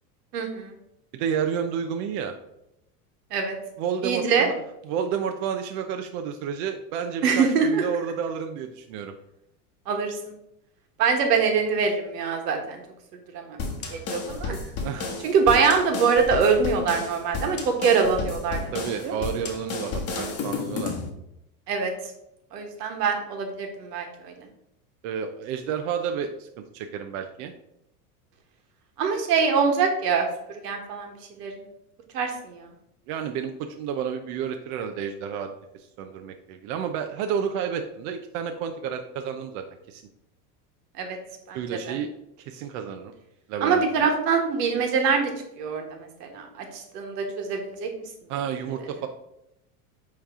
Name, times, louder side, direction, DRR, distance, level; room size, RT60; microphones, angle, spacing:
voice 1, 0.3-0.7 3.3-3.5 4.0-4.5 7.2-7.8 9.9-10.2 11.0-12.8 13.3-13.6 13.9-14.6 15.2-18.6 19.0-19.1 21.7-21.9 22.5-24.3 29.0-31.1 31.4-31.6 32.1-32.7 41.0-41.2 41.5-41.8 43.6-45.3 45.6-47.9, right 5 dB, 85° right, 4 dB, 1.5 m, -24 dB
voice 2, 1.1-2.3 3.8-4.5 4.8-9.1 14.8-15.2 18.7-20.9 25.0-27.5 33.1-35.5 36.0-40.0 41.5-42.1 42.5-43.1 43.5-43.8 48.3-49.1, right 7 dB, 55° right, 5 dB, 0.7 m, -30 dB
sound 1, 13.6-21.1, left 4 dB, 30° left, 1.3 m, -32 dB
8.8 x 3.3 x 3.6 m, 0.83 s
supercardioid pair, 120°, 46 cm